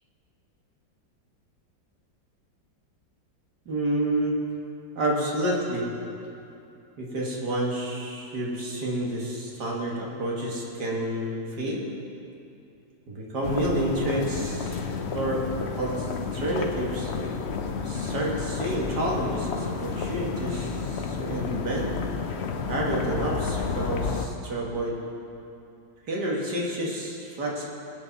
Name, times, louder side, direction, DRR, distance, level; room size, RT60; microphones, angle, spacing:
voice 1, 3.7-4.4 5.0-5.9 7.0-11.9 13.1-14.8 15.1-17.1 17.8-21.9 22.7-25.0 26.1-27.7, right 1 dB, 60° right, -3 dB, 2.2 m, -29 dB
sound 1, 13.4-24.3, left 5 dB, 90° left, 0.5 m, -31 dB
19.5 x 8.3 x 4.1 m, 2.7 s
omnidirectional pair, 2.1 m